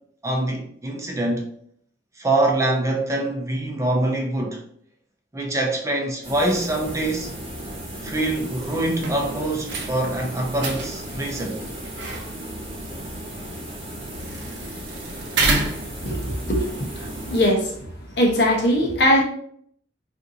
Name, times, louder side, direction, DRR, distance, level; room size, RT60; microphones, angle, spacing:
voice 1, 0.2-1.5 2.2-4.6 5.3-7.3 8.0-11.6, right 2 dB, 15° right, 0.5 m, -24 dB
sound 1, 6.2-17.9, right 1 dB, 35° right, 0.9 m, -35 dB
sound 2, 8.9-16.4, right 3 dB, 65° right, 0.6 m, -30 dB
voice 2, 16.0-17.7 18.2-19.2, equal, 60° left, 0.8 m, -20 dB
2.6 x 2.6 x 3.7 m
head